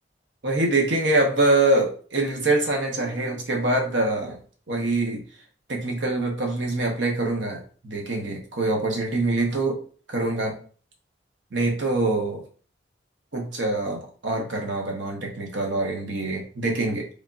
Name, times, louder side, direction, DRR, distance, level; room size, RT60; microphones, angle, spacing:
voice 1, 0.4-4.4 4.7-5.2 5.7-9.8 10.1-10.6 11.5-12.4 13.3-17.1, right 2 dB, 85° right, 2 dB, 0.9 m, -24 dB
3.4 x 2.4 x 3.7 m, 0.42 s
head